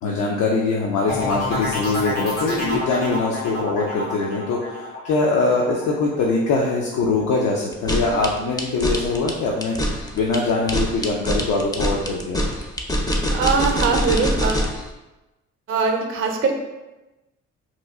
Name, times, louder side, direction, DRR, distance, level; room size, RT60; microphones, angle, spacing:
voice 1, 0.0-12.5, left 3 dB, 60° left, -2 dB, 0.6 m, -22 dB
sound 1, 1.1-6.7 7.1-7.6, left 1 dB, 85° left, 1.2 m, -29 dB
sound 2, 7.7-14.8, equal, 10° left, 0.5 m, -24 dB
voice 2, 13.3-14.7 15.7-16.5, right 5 dB, 40° right, 2 dB, 0.6 m, -21 dB
3.1 x 2.3 x 3.4 m, 1.1 s
hypercardioid pair, 50°, 34 cm